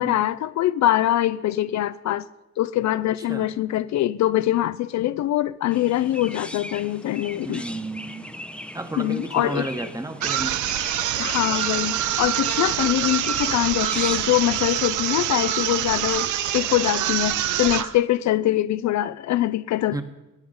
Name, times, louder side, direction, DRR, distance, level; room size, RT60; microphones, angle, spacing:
voice 1, 0.0-2.3 2.6-7.6 9.0-9.7 11.2-20.0, left 14 dB, 65° left, 0.5 m, -23 dB
Chirp tweet, 5.7-14.7, left 1 dB, 5° left, 0.7 m, -39 dB
voice 2, 7.4-8.3 8.7-10.6 19.9-20.0, right 2 dB, 10° right, 1.2 m, -32 dB
sound 1, 10.2-18.0, right 12 dB, 75° right, 0.7 m, -25 dB
16.5 x 9.4 x 4.0 m
cardioid pair, 90°, 30 cm